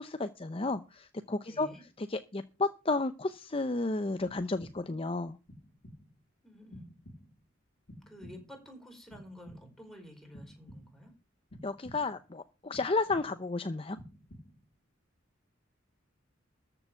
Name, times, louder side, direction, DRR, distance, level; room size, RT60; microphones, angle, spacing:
voice 1, 0.0-5.4 11.6-14.0, left 3 dB, 30° left, 10 dB, 0.7 m, -32 dB
voice 2, 1.4-1.8 6.4-6.9 8.1-11.1, equal, ahead, 2 dB, 4.9 m, -50 dB
sound 1, 4.3-5.1 5.5-6.2 6.7-7.5 7.9-8.7 9.1-9.9 10.3-11.1 11.5-12.3 12.7-13.6 14.0-14.8, equal, 55° left, 2.4 m, -52 dB
14.0 x 7.0 x 7.0 m, 0.31 s
head